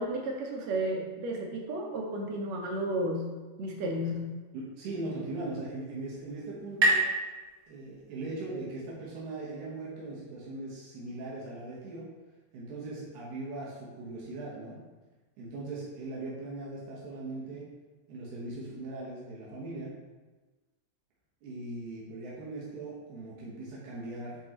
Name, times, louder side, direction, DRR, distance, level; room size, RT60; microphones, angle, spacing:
voice 1, 0.0-4.3, right 1 dB, 70° right, 0 dB, 2.1 m, -33 dB
voice 2, 4.5-7.0 7.7-12.0 12.5-14.8 15.4-17.7 18.1-19.9 21.4-24.4, right 2 dB, 90° right, -6 dB, 2.8 m, -39 dB
sound 1, 5.4-8.7, right 2 dB, 35° right, 1.5 m, -31 dB
8.8 x 4.5 x 3.0 m, 1.2 s
omnidirectional pair, 3.3 m